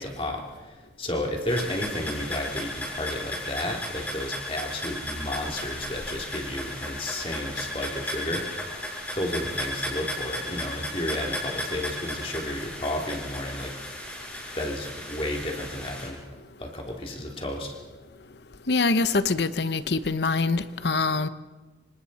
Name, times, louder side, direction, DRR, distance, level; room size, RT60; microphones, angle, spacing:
voice 1, 0.0-8.5 9.1-13.7 14.5-16.2 16.6-17.8, left 1 dB, 30° left, 3.1 m, -32 dB
sound 1, 1.5-16.1, left 1 dB, 10° left, 5.4 m, -35 dB
voice 2, 18.7-21.3, left 3 dB, 70° left, 0.9 m, -24 dB
27.0 x 25.5 x 4.3 m
head